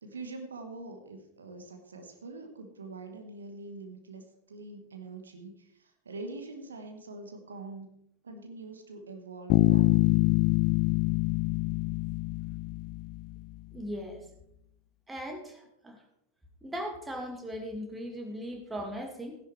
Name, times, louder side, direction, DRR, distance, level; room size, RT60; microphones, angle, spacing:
voice 1, 0.0-7.9 8.2-10.2, right 3 dB, 70° right, 5 dB, 1.5 m, -44 dB
Bass guitar, 9.5-13.2, left 19 dB, 40° left, 0.3 m, -25 dB
voice 2, 13.7-14.2 15.1-16.0 16.6-19.4, equal, 10° right, 2 dB, 2.2 m, -38 dB
15.5 x 11.0 x 3.3 m, 0.78 s
figure-of-eight pair, 90°, 0 cm